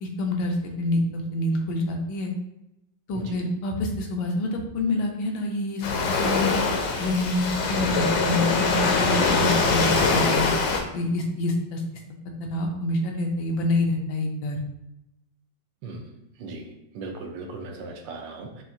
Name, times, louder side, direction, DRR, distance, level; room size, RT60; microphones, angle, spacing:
voice 1, 0.0-2.3 3.1-6.6 7.0-10.5 10.9-11.8 12.4-14.6, left 1 dB, 85° left, 2 dB, 1.5 m, -27 dB
Waves surf, 5.8-10.8, left 4 dB, 70° left, 1.2 m, -23 dB
voice 2, 15.8-16.1 16.4-18.6, right 3 dB, 80° right, 3 dB, 1.4 m, -38 dB
5.7 x 2.4 x 2.7 m, 0.87 s
omnidirectional pair, 2.1 m